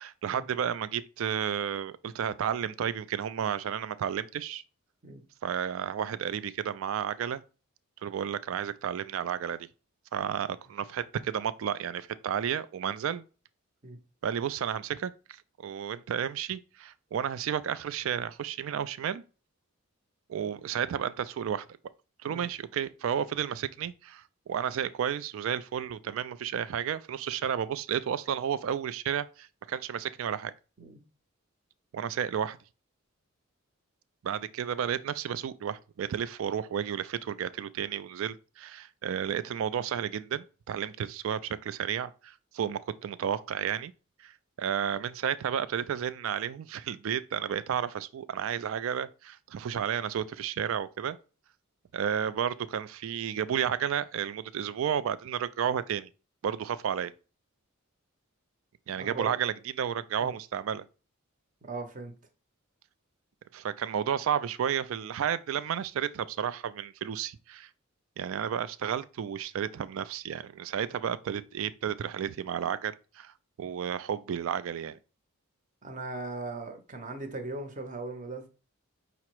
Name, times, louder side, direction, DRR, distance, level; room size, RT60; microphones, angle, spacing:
voice 1, 0.0-4.6 5.4-7.4 8.0-9.7 10.1-13.2 14.2-19.2 20.3-21.7 22.2-24.2 24.5-30.5 31.9-32.6 34.2-43.9 44.2-51.2 51.9-56.1 56.4-57.1 58.9-60.9 63.5-67.7 68.2-73.3 73.6-75.0, right 8 dB, 65° right, 0.3 m, -32 dB
voice 2, 59.0-59.3 60.2-60.3 61.6-62.1 75.8-78.5, right 3 dB, 35° right, 0.7 m, -39 dB
5.7 x 2.0 x 4.5 m
head